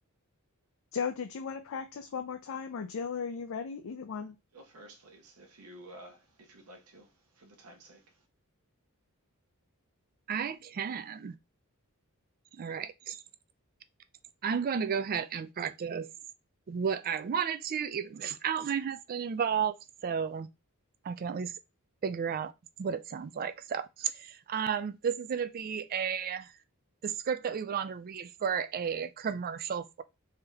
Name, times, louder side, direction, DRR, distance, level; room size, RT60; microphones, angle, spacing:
voice 1, 0.9-4.3, left 6 dB, 65° left, 0.4 m, -36 dB
voice 2, 4.5-8.2, right 1 dB, 75° right, 1.0 m, -53 dB
voice 3, 10.3-11.3 12.5-13.2 14.4-16.1 16.7-19.8 20.0-20.5 21.0-21.5 22.0-22.5 22.8-26.5 27.0-30.0, right 7 dB, 40° right, 0.3 m, -33 dB
3.4 x 2.8 x 3.4 m
head